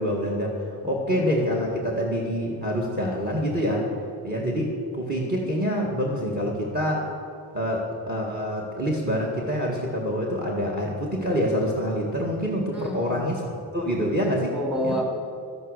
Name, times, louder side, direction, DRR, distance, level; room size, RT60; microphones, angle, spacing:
voice 1, 0.0-3.8 4.2-7.0 7.5-14.5 14.8-15.0, equal, 20° right, -1 dB, 2.0 m, -26 dB
voice 2, 0.8-1.6 12.7-13.2 14.5-15.0, equal, ahead, -1 dB, 2.8 m, -31 dB
13.0 x 12.0 x 6.7 m, 2.5 s
wide cardioid pair, 150°, 44 cm